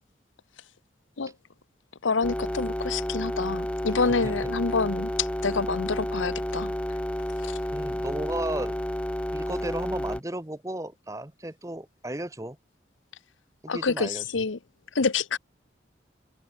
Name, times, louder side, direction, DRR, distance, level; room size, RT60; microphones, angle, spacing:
voice 1, 2.0-6.7 7.4-7.6 13.7-14.6 14.9-15.4, left 4 dB, 85° left, 0.9 m, -27 dB
sound 1, 2.2-10.2, equal, 5° left, 0.6 m, -31 dB
voice 2, 4.0-4.4 7.7-8.8 9.3-12.6 13.6-14.2, right 1 dB, 15° right, 1.1 m, -34 dB
head